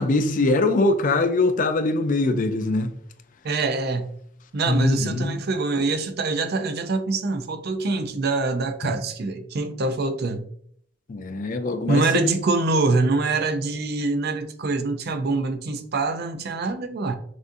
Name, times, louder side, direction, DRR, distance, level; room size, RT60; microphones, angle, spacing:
voice 1, 0.0-2.9 4.7-5.4 8.8-8.9 11.1-12.3, left 2 dB, 45° left, 0.4 m, -22 dB
voice 2, 3.4-4.1 4.5-10.4 11.9-17.1, right 3 dB, 55° right, 0.5 m, -25 dB
6.2 x 2.5 x 2.6 m
head